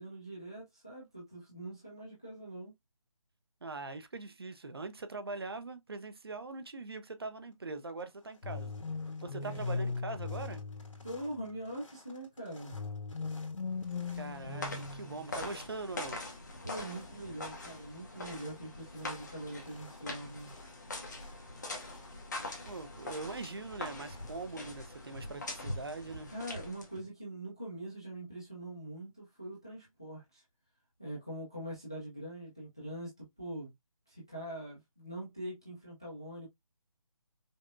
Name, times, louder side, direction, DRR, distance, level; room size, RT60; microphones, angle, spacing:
voice 1, 0.0-2.7 9.4-9.9 11.0-12.8 16.6-20.5 26.3-30.4 31.0-33.7 34.1-36.5, right 1 dB, 10° left, 0.4 m, -43 dB
voice 2, 3.6-8.7 9.2-10.6 14.1-16.2 22.6-26.3, right 3 dB, 45° right, 0.6 m, -42 dB
sound 1, 7.2-7.5 7.8-25.7, left 2 dB, 60° left, 1.5 m, -60 dB
sound 2, 8.4-11.6 12.7-15.6, left 4 dB, 90° left, 0.6 m, -39 dB
sound 3, 13.8-27.1, left 2 dB, 30° left, 0.9 m, -43 dB
5.2 x 2.1 x 2.5 m
figure-of-eight pair, 170°, 18 cm